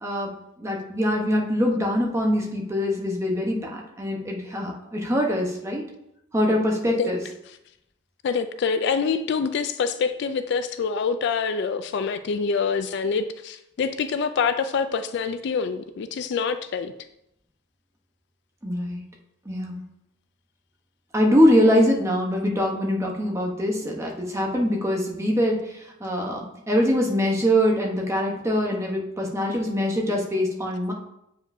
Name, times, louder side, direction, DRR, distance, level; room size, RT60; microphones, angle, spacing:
voice 1, 0.0-5.9 6.3-7.2 18.6-19.0 19.4-19.8 21.1-30.9, equal, 15° right, 0 dB, 0.9 m, -23 dB
voice 2, 8.2-16.9, left 5 dB, 55° left, 10 dB, 0.3 m, -26 dB
7.7 x 4.8 x 2.6 m, 0.82 s
head